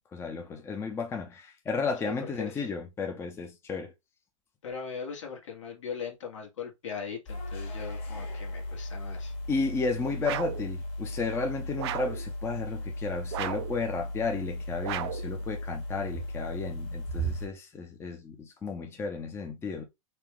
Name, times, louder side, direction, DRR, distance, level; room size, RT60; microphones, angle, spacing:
voice 1, 0.0-3.9 9.5-19.8, left 4 dB, 15° left, 0.6 m, -33 dB
voice 2, 2.0-2.7 4.6-9.3, left 6 dB, 65° left, 1.5 m, -39 dB
sound 1, 7.3-17.5, equal, 40° left, 1.6 m, -36 dB
sound 2, 10.2-10.7 11.8-12.2 13.3-13.8 14.8-15.3, right 12 dB, 55° right, 0.5 m, -34 dB
4.1 x 2.4 x 3.4 m
hypercardioid pair, 105°, 17 cm